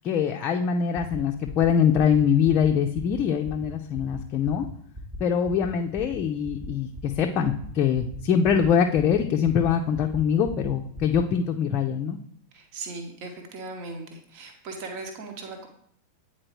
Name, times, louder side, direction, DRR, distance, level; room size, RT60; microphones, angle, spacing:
voice 1, 0.0-4.7 5.2-12.2, left 7 dB, 35° left, 3 dB, 0.5 m, -23 dB
sound 1, 0.9-1.2 1.4-1.7 1.9-2.2 2.4-2.7 2.9-3.2 3.4-3.7 3.9-4.2 4.4-4.7 4.9-5.2 5.4-5.7 5.9-6.2 6.4-6.7 6.9-7.2 7.4-7.7 7.9-8.2 8.4-8.7 8.9-9.2 9.4-9.7 9.9-10.2 10.4-10.7 10.9-11.2, equal, 15° right, 1.0 m, -38 dB
voice 2, 12.5-15.7, right 3 dB, 45° right, 4 dB, 1.1 m, -38 dB
8.7 x 4.3 x 3.0 m, 0.65 s
figure-of-eight pair, 90°, 0 cm